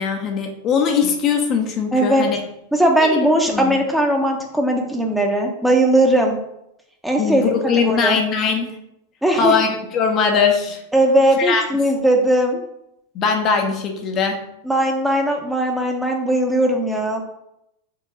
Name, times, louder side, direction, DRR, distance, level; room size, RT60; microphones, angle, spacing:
voice 1, 0.0-2.4 3.0-3.2 3.5-3.7 7.2-8.7 9.4-10.8 11.4-11.6 13.1-14.4, left 5 dB, 35° left, 3 dB, 0.9 m, -20 dB
voice 2, 1.9-2.3 2.7-6.4 7.0-7.4 7.8-8.2 9.2-9.5 10.9-12.6 14.6-17.2, right 1 dB, 5° right, 2 dB, 1.1 m, -18 dB
4.8 x 3.8 x 5.4 m, 0.81 s
figure-of-eight pair, 90°, 0 cm